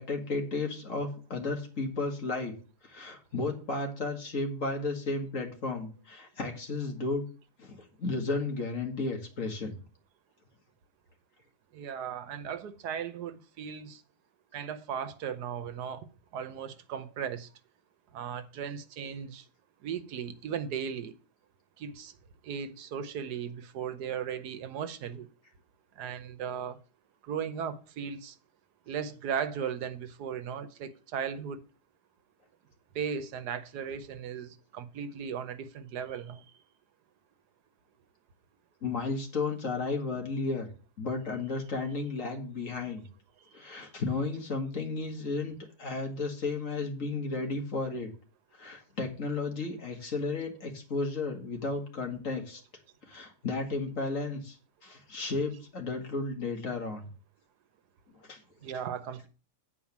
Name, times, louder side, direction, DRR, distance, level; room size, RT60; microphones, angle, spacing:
voice 1, 0.0-2.6 2.8-7.2 7.6-9.8 38.8-40.7 41.0-43.0 43.5-48.1 48.6-52.6 53.1-54.6 54.8-57.0 58.3-58.4, left 3 dB, 50° left, 2.3 m, -33 dB
voice 2, 11.7-14.0 14.5-16.1 16.3-17.5 18.1-19.4 19.8-21.1 21.8-22.1 22.4-25.3 26.0-26.8 27.3-28.3 28.9-31.6 32.9-36.4 58.6-59.3, right 7 dB, 80° right, 1.4 m, -37 dB
8.9 x 4.6 x 7.2 m
omnidirectional pair, 1.7 m